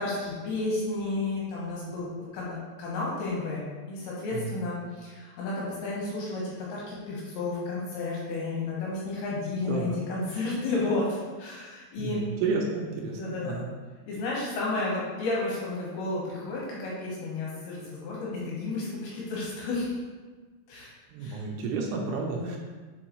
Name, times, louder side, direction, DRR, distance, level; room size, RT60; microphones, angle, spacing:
voice 1, 0.0-12.2 13.1-13.6 14.1-19.9 20.7-20.9 21.2-21.4 22.4-22.6, left 2 dB, 70° left, -5 dB, 3.1 m, -32 dB
voice 2, 9.7-10.0 12.0-13.7 21.1-22.6, right 4 dB, 80° right, 0 dB, 3.1 m, -31 dB
6.9 x 4.7 x 3.0 m, 1.4 s
omnidirectional pair, 5.8 m